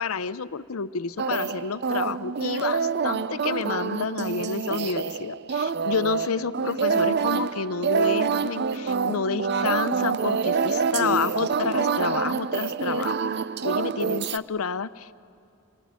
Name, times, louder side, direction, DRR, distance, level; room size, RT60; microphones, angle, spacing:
voice 1, 0.0-13.3 13.6-15.1, left 5 dB, 90° left, 14 dB, 0.7 m, -29 dB
sound 1, 1.2-14.4, right 5 dB, 50° right, 0.6 m, -26 dB
27.0 x 18.5 x 9.5 m, 2.5 s
head